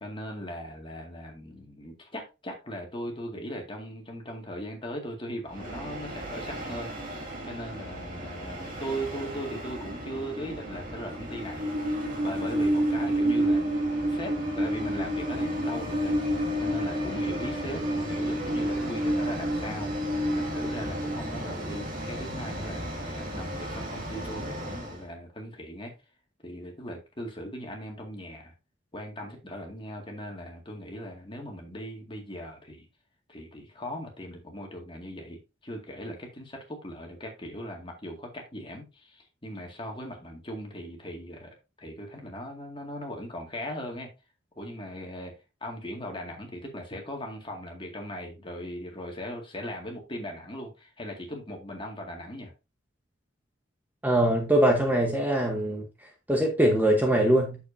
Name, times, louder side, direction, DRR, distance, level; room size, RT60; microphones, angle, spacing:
voice 1, 0.0-11.7 12.2-16.2 16.6-19.9 20.4-25.9 26.4-28.5 28.9-32.9 33.3-44.1 44.6-45.3 45.6-52.5, equal, 25° left, 2.0 m, -39 dB
Train, 5.5-25.0, right 1 dB, 45° right, 2.1 m, -30 dB
voice 2, 54.0-55.8 56.3-57.6, right 1 dB, 10° right, 1.0 m, -22 dB
8.2 x 7.1 x 2.6 m
head